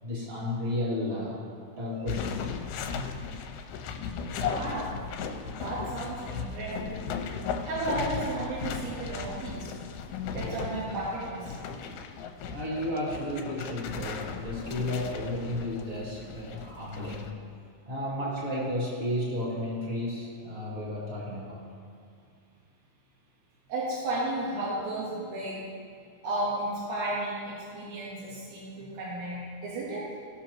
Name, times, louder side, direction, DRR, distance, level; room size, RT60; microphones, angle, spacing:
voice 1, 0.0-1.4 1.8-2.5 12.5-17.4 17.9-21.6, left 1 dB, 25° right, -5 dB, 1.3 m, -33 dB
sound 1, 2.1-17.3, left 6 dB, 85° left, 2.6 m, -36 dB
voice 2, 4.3-5.0 5.5-7.0 7.6-9.7 10.4-11.5 23.7-25.7 26.2-30.2, right 1 dB, 90° right, -7 dB, 3.4 m, -33 dB
18.0 x 6.0 x 3.0 m, 2.2 s
omnidirectional pair, 4.4 m